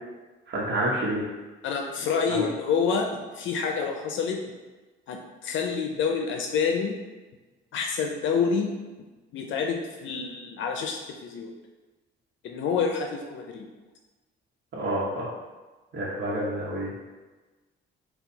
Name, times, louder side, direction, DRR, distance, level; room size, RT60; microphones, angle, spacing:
voice 1, 0.5-1.2 2.3-2.4 14.7-15.3 15.9-16.9, right 1 dB, 60° right, -7 dB, 1.0 m, -28 dB
voice 2, 1.6-4.4 5.1-7.0 7.7-8.7 9.3-11.5 12.4-13.7, left 5 dB, 75° left, 2 dB, 0.5 m, -28 dB
4.3 x 2.3 x 3.9 m, 1.2 s
cardioid pair, 90°, 20 cm